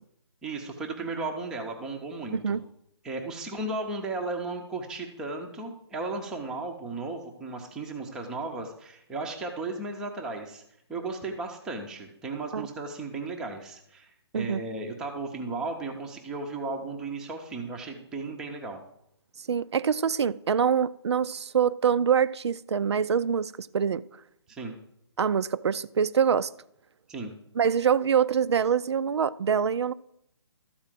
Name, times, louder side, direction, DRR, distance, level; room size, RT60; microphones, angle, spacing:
voice 1, 0.4-2.6 3.0-10.6 10.9-18.8 24.5-24.8 27.1-27.3, right 3 dB, 5° right, 0.5 m, -35 dB
voice 2, 2.3-2.6 12.5-12.7 14.3-14.6 19.5-24.0 25.2-26.5 27.6-29.9, right 7 dB, 75° right, 0.4 m, -25 dB
13.0 x 4.3 x 7.4 m
hypercardioid pair, 165°, 14 cm